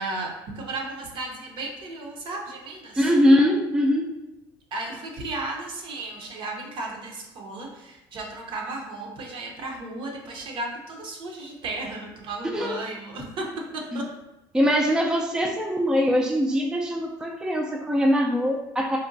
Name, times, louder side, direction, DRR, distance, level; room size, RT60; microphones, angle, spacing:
voice 1, 0.0-3.1 4.7-14.1, right 2 dB, 55° right, 1 dB, 0.8 m, -34 dB
voice 2, 3.0-4.1 12.5-12.8 13.9-14.0 14.5-19.0, equal, 5° right, 0 dB, 0.3 m, -22 dB
4.1 x 2.2 x 2.5 m, 0.98 s
supercardioid pair, 95°, 10 cm